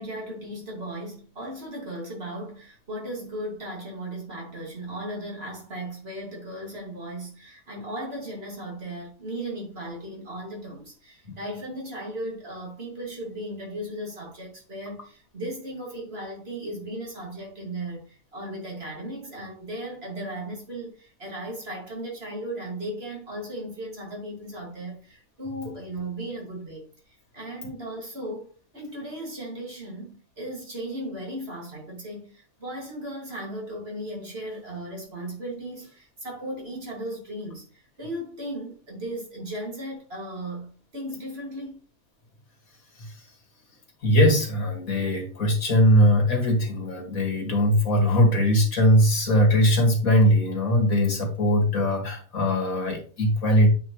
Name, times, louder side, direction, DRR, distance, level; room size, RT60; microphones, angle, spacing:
voice 1, 0.0-41.8, right 1 dB, 45° right, 2.5 m, -36 dB
voice 2, 44.0-53.7, equal, 70° left, 2.4 m, -20 dB
8.5 x 4.9 x 3.1 m
omnidirectional pair, 1.5 m